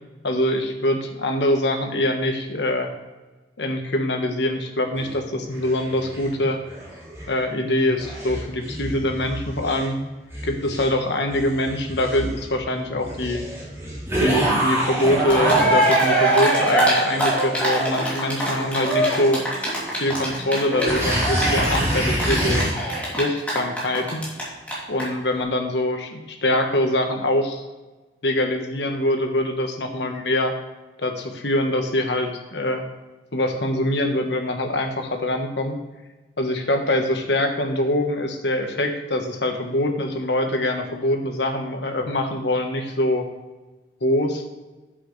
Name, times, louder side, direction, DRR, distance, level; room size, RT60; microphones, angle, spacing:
voice 1, 0.2-2.9 3.6-6.6 7.3-10.0 10.4-13.4 14.2-19.4 20.0-22.7 23.2-24.3 24.9-27.6 28.2-30.5 31.0-32.8 33.3-35.8 36.4-43.3 44.0-44.4, left 1 dB, 75° left, 4 dB, 1.3 m, -24 dB
sound 1, 4.9-7.3 7.7-15.7 16.1-22.7, right 1 dB, 15° right, 2.8 m, -28 dB
Cheering, 15.0-15.1 15.3-24.4 24.7-24.8 25.0-25.1, right 1 dB, 10° left, 2.7 m, -22 dB
9.9 x 7.7 x 3.2 m, 1.2 s
head